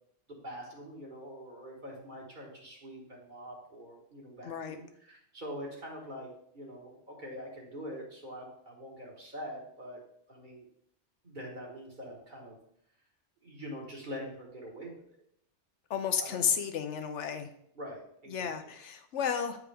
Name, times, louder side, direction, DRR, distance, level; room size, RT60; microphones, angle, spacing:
voice 1, 0.3-10.0 10.3-10.6 11.2-12.6 13.4-15.0 16.2-16.5 17.7-18.5, equal, 45° right, -2 dB, 1.8 m, -44 dB
voice 2, 4.4-4.8 15.9-17.5 18.3-19.6, left 7 dB, 85° left, 7 dB, 1.0 m, -32 dB
8.8 x 4.8 x 3.4 m, 0.70 s
omnidirectional pair, 1.2 m